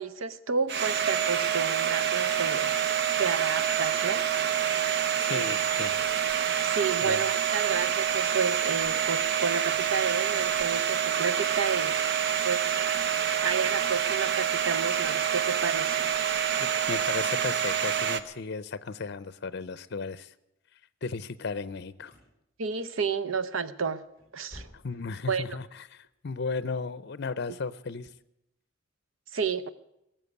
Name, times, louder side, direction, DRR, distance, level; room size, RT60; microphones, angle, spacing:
voice 1, 0.0-2.7 3.2-4.3 5.3-5.6 6.6-11.9 12.4-12.9 13.4-16.1 22.6-24.0 24.3-24.7 25.3-25.6 29.3-29.7, right 5 dB, 90° right, 14 dB, 0.8 m, -31 dB
Domestic sounds home sounds, 0.7-18.2, right 9 dB, 55° right, 0.8 m, -27 dB
voice 2, 5.2-6.0 7.0-7.2 16.5-20.3 21.0-22.1 24.7-28.1, left 4 dB, 55° left, 17 dB, 0.6 m, -35 dB
sound 1, 21.6-22.4 22.6-23.1 23.4-23.5 24.0-25.2 25.5-25.6 26.2-26.3, left 1 dB, 10° left, 6.9 m, -52 dB
18.0 x 7.4 x 9.6 m, 0.84 s
head